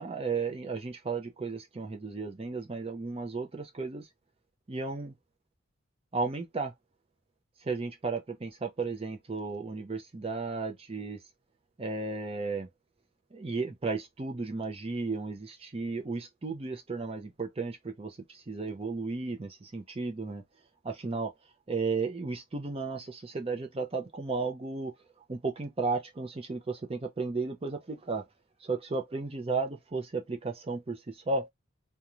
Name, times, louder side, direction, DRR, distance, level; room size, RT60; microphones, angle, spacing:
voice 1, 0.0-4.1 4.7-5.1 6.1-6.7 7.6-11.2 11.8-12.7 13.3-20.4 20.8-21.3 21.7-24.9 25.3-28.2 28.6-31.5, right 4 dB, 25° right, 0.5 m, -34 dB
2.5 x 2.2 x 2.9 m
head